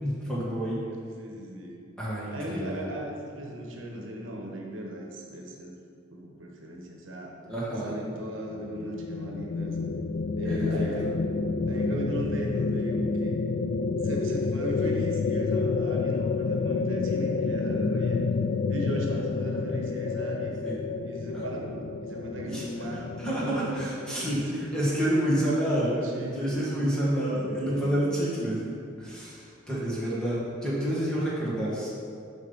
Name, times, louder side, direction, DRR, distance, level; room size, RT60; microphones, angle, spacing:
voice 1, 0.0-0.8 2.0-2.9 7.5-8.0 10.4-11.1 20.6-20.7 21.3-21.4 22.5-22.6 23.2-24.4 24.7-31.9, right 1 dB, 5° left, -8 dB, 1.7 m, -29 dB
voice 2, 0.8-1.8 2.3-5.7 6.1-7.4 7.7-9.8 10.4-11.1 11.7-13.4 14.0-18.3 18.7-20.6 21.0-24.7 25.3-26.7 27.3-28.0, right 1 dB, 75° right, -1 dB, 1.0 m, -38 dB
sound 1, 8.0-23.9, left 4 dB, 50° left, 0.3 m, -29 dB
7.4 x 5.5 x 4.0 m, 2.4 s
head